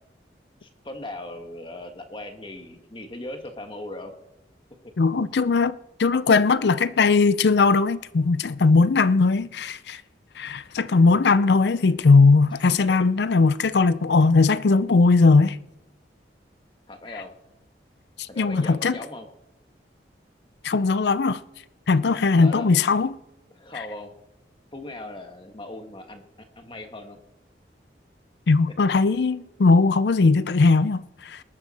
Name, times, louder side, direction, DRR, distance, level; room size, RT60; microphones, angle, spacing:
voice 1, 0.6-4.1 12.5-12.6 16.9-17.3 18.3-19.3 22.4-22.8 23.6-24.1 24.7-26.2 26.6-27.2, left 1 dB, 30° left, 1.5 m, -38 dB
voice 2, 5.0-5.7 6.0-10.0 10.4-15.6 18.4-18.9 20.6-21.4 21.9-23.2 28.5-31.4, left 4 dB, 70° left, 0.5 m, -19 dB
19.5 x 11.5 x 4.3 m
head